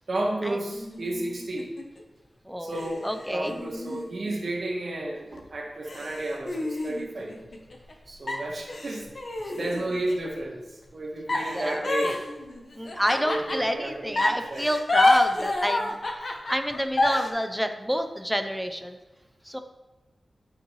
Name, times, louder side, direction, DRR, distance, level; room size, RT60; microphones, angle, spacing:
voice 1, 0.1-1.7 2.6-7.4 8.1-9.0 9.5-10.6 10.9-12.2 13.1-14.7, right 1 dB, 55° right, 0 dB, 1.5 m, -32 dB
sound 1, 0.7-2.0 2.7-4.9 5.4-5.5 5.9-7.9 8.3-10.3 11.3-13.8 14.1-17.3, left 2 dB, 50° left, 0.9 m, -28 dB
voice 2, 2.5-2.8 3.0-3.6 11.5-12.1 12.7-19.0 19.5-19.6, equal, ahead, 7 dB, 0.6 m, -29 dB
8.9 x 6.4 x 3.2 m, 1.1 s
wide cardioid pair, 115°, 0 cm